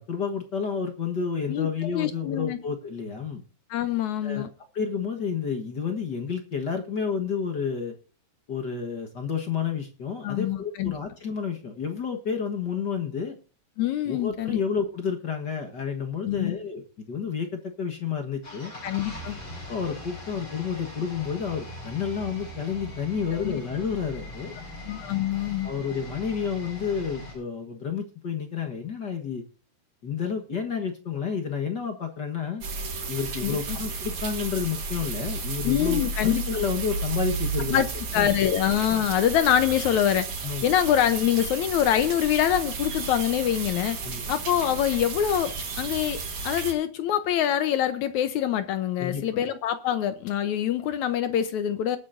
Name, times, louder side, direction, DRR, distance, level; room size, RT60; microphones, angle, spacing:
voice 1, 0.1-3.4 4.2-4.5 4.7-7.9 8.5-13.3 14.0-18.7 19.7-24.5 25.6-29.4 30.0-32.6 33.1-37.8 38.1-38.4 40.4-40.7 44.0-44.3 49.0-49.4, left 6 dB, 50° left, 1.2 m, -30 dB
voice 2, 1.5-2.6 3.7-4.5 10.2-10.9 13.8-14.6 16.3-16.5 18.8-19.4 23.3-23.6 24.9-25.7 33.4-33.8 35.6-36.4 37.7-37.9 38.1-40.3 40.6-44.0 44.3-46.2 46.4-52.0, left 10 dB, 75° left, 1.9 m, -25 dB
sound 1, 18.4-27.3, left 1 dB, 35° left, 5.8 m, -41 dB
sound 2, 32.6-46.7, right 3 dB, 45° right, 3.1 m, -33 dB
20.0 x 9.4 x 2.6 m
omnidirectional pair, 4.0 m